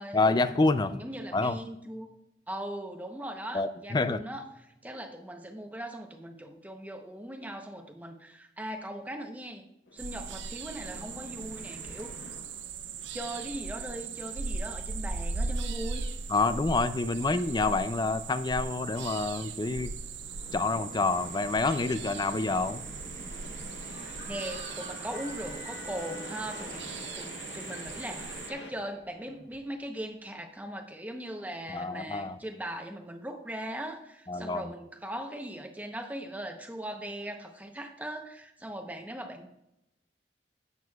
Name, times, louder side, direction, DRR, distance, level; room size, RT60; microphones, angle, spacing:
voice 1, 0.1-1.0 1.3-1.6 3.5-4.2 16.3-19.9 20.5-22.8 31.7-32.4 34.3-34.6, left 3 dB, 25° left, 12 dB, 0.4 m, -27 dB
voice 2, 0.8-2.1 2.5-9.6 9.9-12.4 13.1-16.1 23.9-26.8 27.2-39.5, right 1 dB, 10° right, 4 dB, 0.8 m, -39 dB
sound 1, 9.9-28.7, left 2 dB, 80° left, 0.9 m, -48 dB
sound 2, 10.0-28.5, right 4 dB, 90° right, 0.6 m, -39 dB
sound 3, 23.2-30.1, left 4 dB, 55° left, 1.7 m, -50 dB
11.0 x 8.0 x 2.4 m, 0.87 s
head